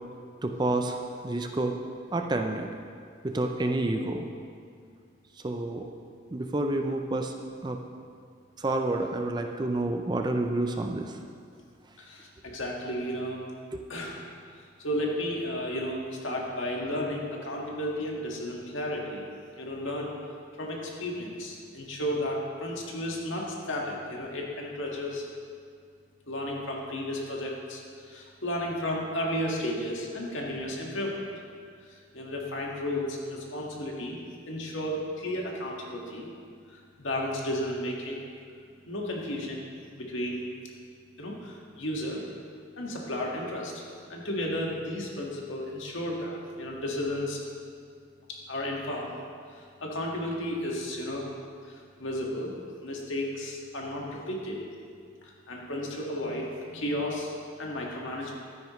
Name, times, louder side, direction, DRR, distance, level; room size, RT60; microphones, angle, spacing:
voice 1, 0.4-1.8 2.1-2.7 3.2-4.3 5.4-5.9 6.3-7.3 7.6-7.8 8.6-11.2 13.7-13.8, right 2 dB, 20° right, 4 dB, 0.5 m, -29 dB
voice 2, 12.0-13.4 13.9-14.2 14.6-19.2 19.6-20.2 20.6-25.2 26.3-31.2 31.8-34.2 34.4-36.3 36.7-38.2 38.9-39.7 39.9-40.4 41.2-42.2 42.8-43.8 44.1-47.4 48.5-49.1 49.5-51.3 51.6-54.6 55.2-58.3, left 1 dB, 75° left, -2 dB, 1.8 m, -33 dB
12.5 x 9.8 x 3.1 m, 2.2 s
head